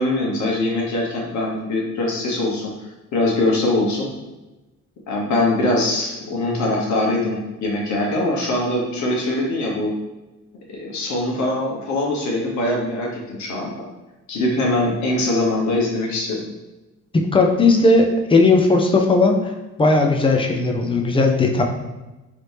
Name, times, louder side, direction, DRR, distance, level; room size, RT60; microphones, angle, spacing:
voice 1, 0.0-2.7 3.1-4.1 5.1-9.9 10.7-13.7 14.3-16.4, left 2 dB, 70° left, -2 dB, 1.1 m, -22 dB
voice 2, 17.3-19.5 19.8-21.6, left 3 dB, 15° left, 2 dB, 0.5 m, -16 dB
3.2 x 2.7 x 3.3 m, 1.1 s
cardioid pair, 90°, 30 cm